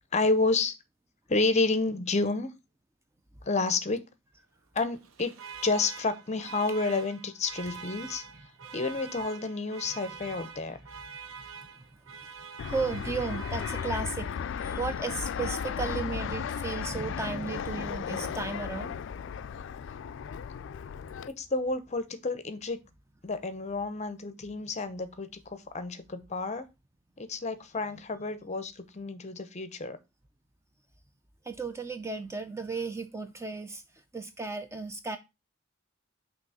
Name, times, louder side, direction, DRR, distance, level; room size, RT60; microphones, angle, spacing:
voice 1, 0.1-0.7 1.3-2.5 3.4-4.0 4.7-5.3 5.6-8.2 8.7-10.8 21.3-22.8 23.2-26.7 27.2-30.0, left 3 dB, 35° left, 0.7 m, -30 dB
Alarm, 4.9-14.4, right 6 dB, 85° right, 0.6 m, -45 dB
Fixed-wing aircraft airplane, 12.6-21.3, left 7 dB, 60° left, 0.3 m, -35 dB
voice 2, 12.7-14.3 14.6-18.9 31.5-33.8 34.1-35.2, right 4 dB, 15° right, 0.4 m, -34 dB
6.0 x 3.0 x 5.4 m
head